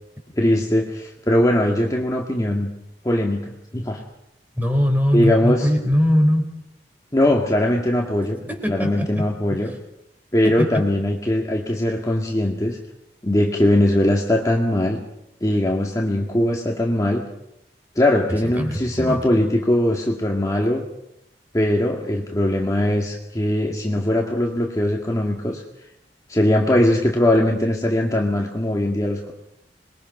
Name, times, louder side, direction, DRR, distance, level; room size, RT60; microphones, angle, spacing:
voice 1, 0.4-2.7 3.0-4.0 5.1-5.7 7.1-9.7 10.3-12.8 13.2-15.0 15.4-17.2 18.0-20.8 21.5-25.6 26.3-29.3, left 1 dB, 20° left, 0 dB, 1.9 m, -20 dB
voice 2, 4.6-6.4 8.5-9.7 10.4-10.7 18.6-19.2, left 1 dB, 10° right, 3 dB, 4.4 m, -21 dB
27.5 x 21.5 x 5.5 m, 0.81 s
head